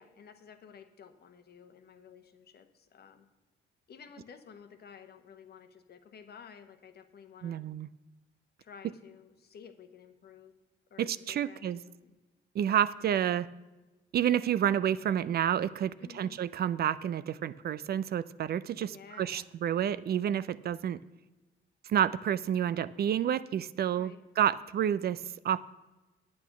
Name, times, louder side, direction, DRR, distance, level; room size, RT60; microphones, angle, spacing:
voice 1, 0.0-3.3 3.9-7.6 8.6-10.5 10.9-12.1 16.0-16.4 18.9-19.5 23.9-24.2, left 7 dB, 55° left, 8 dB, 1.0 m, -53 dB
voice 2, 7.4-7.9 11.0-11.8 12.5-13.5 14.1-21.0 21.9-25.6, right 10 dB, 55° right, 16 dB, 0.4 m, -29 dB
8.8 x 8.5 x 6.0 m, 1.1 s
cardioid pair, 90°, 20 cm